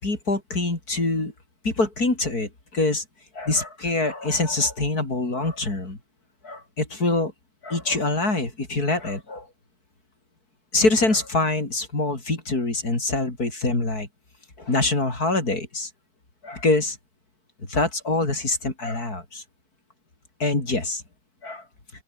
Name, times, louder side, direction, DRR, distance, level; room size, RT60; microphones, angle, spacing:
voice 1, 0.0-1.3 1.6-3.0 3.4-6.0 6.4-7.3 7.6-9.5 10.7-14.1 14.6-15.9 16.4-17.0 17.7-19.4 20.4-21.0 21.4-21.6, left 2 dB, 40° left, 5.5 m, -24 dB
open air
omnidirectional pair, 2.4 m